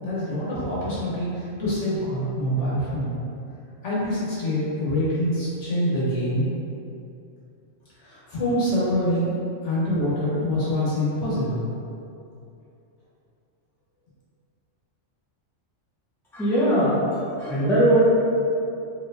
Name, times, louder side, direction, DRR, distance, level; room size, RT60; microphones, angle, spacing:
voice 1, 0.0-3.1 3.8-6.5 8.0-9.4 9.6-11.7, equal, 75° left, -9 dB, 1.5 m, -25 dB
voice 2, 16.3-17.0 17.4-18.0, right 1 dB, ahead, -9 dB, 0.6 m, -20 dB
4.4 x 3.0 x 2.6 m, 2.7 s
omnidirectional pair, 1.2 m